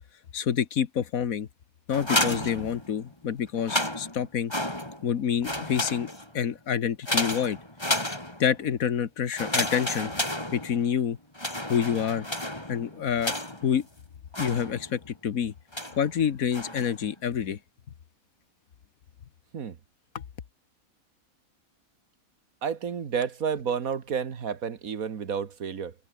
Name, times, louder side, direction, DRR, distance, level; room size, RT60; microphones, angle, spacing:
voice 1, 0.3-1.5 1.9-4.5 5.0-7.6 8.4-10.1 10.5-11.2 11.7-12.3 12.7-13.4 13.6-13.9 14.4-15.5 15.9-17.6 20.1-20.2, left 8 dB, 75° left, 1.6 m, -27 dB
sound 1, 1.9-3.1 3.5-5.1 5.4-6.4 7.1-8.6 9.3-11.0 11.3-13.8 14.3-15.1 15.7-16.1 16.5-17.0, left 1 dB, 15° left, 4.4 m, -31 dB
voice 2, 22.6-25.9, right 6 dB, 75° right, 1.9 m, -30 dB
omnidirectional pair, 1.5 m